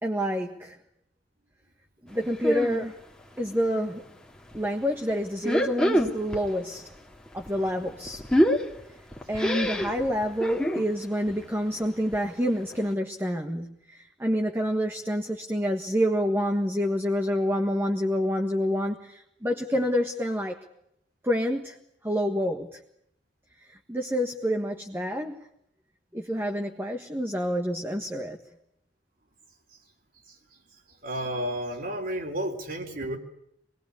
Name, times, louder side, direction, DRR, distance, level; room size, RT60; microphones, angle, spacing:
voice 1, 0.0-0.7 2.0-3.0 3.4-4.0 4.5-6.9 7.3-8.2 9.3-20.6 21.2-21.8 22.0-22.8 23.7-25.4 26.1-28.4, equal, 15° right, 4 dB, 1.6 m, -28 dB
sound 1, 2.4-2.8 3.2-4.0 4.4-4.6 5.3-6.5 6.8-10.9 11.3-11.5 11.8-11.9 12.1-12.2 12.7-12.8, equal, 5° left, 2.4 m, -26 dB
voice 2, 31.0-33.2, equal, 50° right, 4 dB, 4.3 m, -31 dB
26.0 x 21.0 x 8.4 m, 0.75 s
head